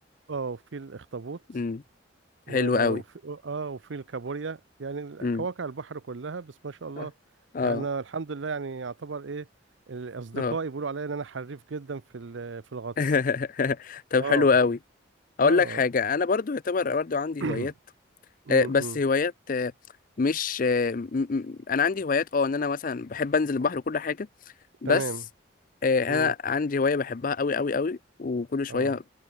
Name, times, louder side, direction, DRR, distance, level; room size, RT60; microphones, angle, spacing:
voice 1, 0.3-1.4 2.5-7.1 7.6-9.5 9.9-13.0 14.2-14.5 15.4-15.8 17.4-17.7 18.5-19.0 24.8-25.2 26.1-26.3 28.7-29.0, right 4 dB, 70° right, 0.6 m, -34 dB
voice 2, 2.5-3.0 5.2-5.4 7.0-7.1 7.5-7.9 10.3-10.5 13.0-14.8 15.4-17.7 18.5-19.7 20.2-24.3 24.8-25.0 25.8-29.0, left 4 dB, 45° left, 0.5 m, -25 dB
head